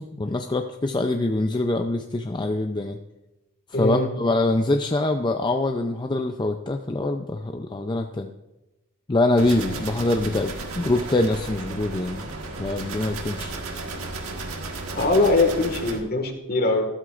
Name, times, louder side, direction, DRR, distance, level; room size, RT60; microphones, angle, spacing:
voice 1, 0.0-3.0 3.7-8.3 9.1-12.3 12.6-13.5, left 2 dB, 20° left, 4 dB, 0.5 m, -24 dB
voice 2, 3.7-4.1 14.9-16.9, left 2 dB, 45° left, 5 dB, 1.7 m, -21 dB
sound 1, 9.4-16.0, right 3 dB, 75° right, 1.6 m, -34 dB
14.5 x 12.5 x 2.5 m, 1.0 s
head